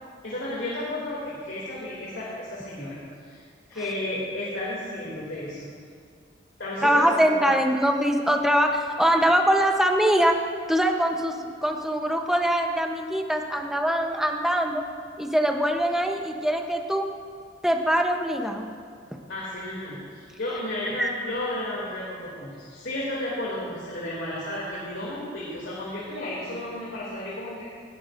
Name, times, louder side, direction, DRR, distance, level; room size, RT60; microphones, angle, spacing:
voice 1, 0.2-3.4 3.7-5.7 6.6-7.5 19.3-27.6, left 1 dB, 80° left, -7 dB, 2.7 m, -33 dB
voice 2, 6.8-10.4 10.7-14.8 15.2-17.1 17.6-18.7 21.0-21.1, equal, ahead, 3 dB, 0.8 m, -23 dB
20.0 x 12.0 x 2.6 m, 2.3 s
head